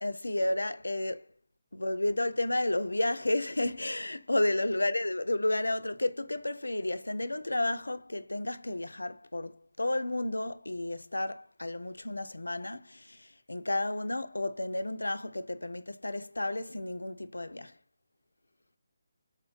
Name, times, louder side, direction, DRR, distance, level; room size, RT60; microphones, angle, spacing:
voice 1, 0.0-1.3 1.7-17.7, left 1 dB, 80° left, 0.4 m, -32 dB
4.1 x 3.0 x 2.4 m
figure-of-eight pair, 145°, 0 cm